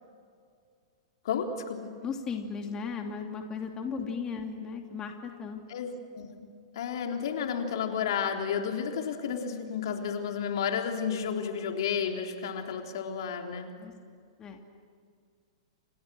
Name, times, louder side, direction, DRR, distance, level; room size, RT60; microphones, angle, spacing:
voice 1, 1.2-1.9 4.0-4.1 5.7-6.3 6.8-13.7, left 7 dB, 65° left, 3 dB, 3.7 m, -32 dB
voice 2, 2.0-5.6 13.8-13.9 14.4-14.6, left 5 dB, 25° left, 3 dB, 2.8 m, -36 dB
29.5 x 29.5 x 6.4 m, 2.1 s
hypercardioid pair, 105°, 3 cm